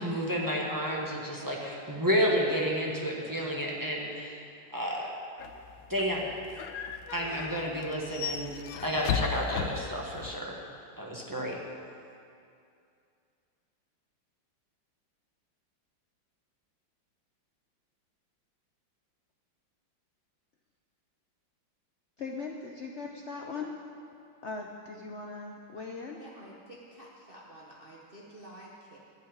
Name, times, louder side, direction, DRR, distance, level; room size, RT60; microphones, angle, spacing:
voice 1, 0.0-4.4 4.7-5.1 5.9-6.3 7.1-8.5 8.8-10.6 11.0-11.6, equal, 15° right, -3 dB, 1.0 m, -30 dB
sound 1, 5.4-10.4, left 8 dB, 85° left, 1.4 m, -36 dB
voice 2, 22.2-23.7 24.4-26.2, left 4 dB, 70° left, 1 dB, 0.6 m, -39 dB
voice 3, 26.2-29.0, right 1 dB, 35° right, -5 dB, 1.0 m, -50 dB
12.0 x 5.6 x 8.9 m, 2.5 s
omnidirectional pair, 2.1 m